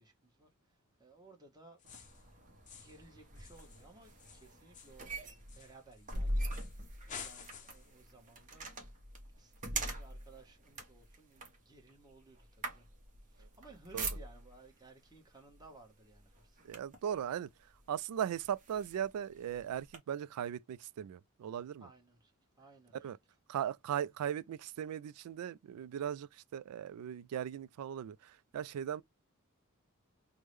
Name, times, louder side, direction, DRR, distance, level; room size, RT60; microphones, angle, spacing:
voice 1, 0.0-1.8 2.7-8.7 9.4-12.9 13.3-16.6 21.8-23.0, right 3 dB, 20° right, 1.0 m, -59 dB
sound 1, 1.8-2.3 2.7-3.1 3.4-6.1 6.5-6.8 7.1-7.9, left 6 dB, 35° left, 0.6 m, -51 dB
sound 2, 1.8-14.7 15.5-15.7 16.1-17.1 17.8-17.9 18.3-20.0, right 2 dB, 35° right, 0.9 m, -42 dB
voice 2, 16.6-17.5 17.9-21.9 23.0-23.2 23.5-29.0, right 9 dB, 80° right, 0.3 m, -38 dB
3.5 x 2.1 x 3.1 m
head